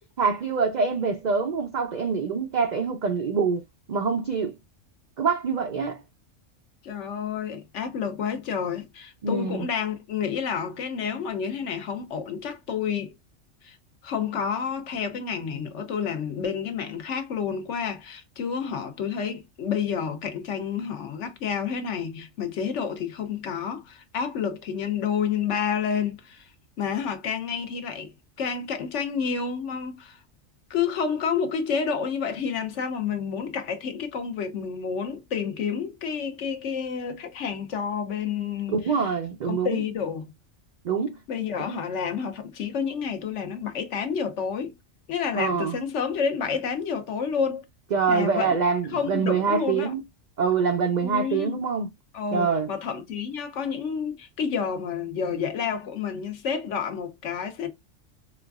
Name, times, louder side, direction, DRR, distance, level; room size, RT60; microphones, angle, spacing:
voice 1, 0.2-3.6 3.9-4.6 5.2-6.0 9.2-9.7 38.7-39.8 40.8-41.2 45.3-45.8 47.9-50.0 50.4-51.9 52.3-52.7, right 5 dB, 85° right, 0.4 m, -25 dB
voice 2, 6.8-13.1 13.6-13.8 14.0-26.5 26.8-28.1 28.4-30.2 30.7-39.1 39.4-40.3 41.3-44.7 45.1-47.6 48.1-48.6 48.9-49.9 51.0-51.6 52.1-57.7, left 6 dB, 70° left, 1.1 m, -29 dB
4.2 x 2.4 x 2.3 m
omnidirectional pair, 1.3 m